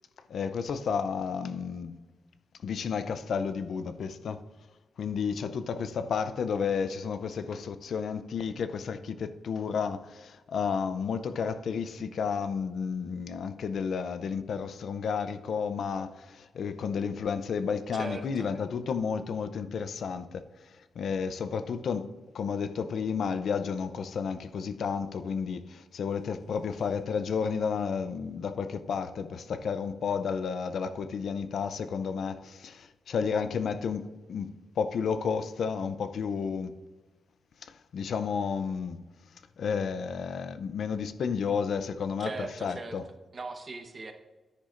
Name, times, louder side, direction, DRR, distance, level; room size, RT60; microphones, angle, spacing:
voice 1, 0.3-2.0 2.6-4.4 5.0-36.7 37.6-39.0 39.6-43.0, left 6 dB, 70° left, 0.5 m, -32 dB
voice 2, 17.9-18.5 26.7-26.8 42.2-44.1, right 3 dB, 40° right, 1.0 m, -40 dB
10.0 x 9.8 x 2.5 m
cardioid pair, 90°, 0 cm